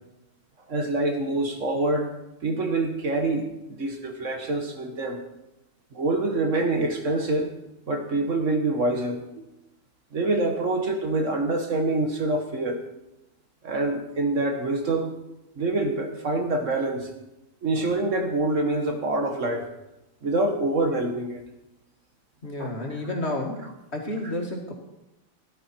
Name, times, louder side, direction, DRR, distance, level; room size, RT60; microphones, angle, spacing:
voice 1, 0.7-2.1 2.4-5.2 5.9-7.5 7.9-9.2 10.1-12.8 13.6-15.1 15.6-17.1 17.6-19.7 20.2-21.4 22.6-22.7 24.2-24.3, right 2 dB, 55° right, 4 dB, 1.7 m, -26 dB
voice 2, 22.4-23.7 23.9-24.7, left 1 dB, 45° left, 1 dB, 2.4 m, -30 dB
16.0 x 11.5 x 4.5 m, 0.95 s
omnidirectional pair, 1.5 m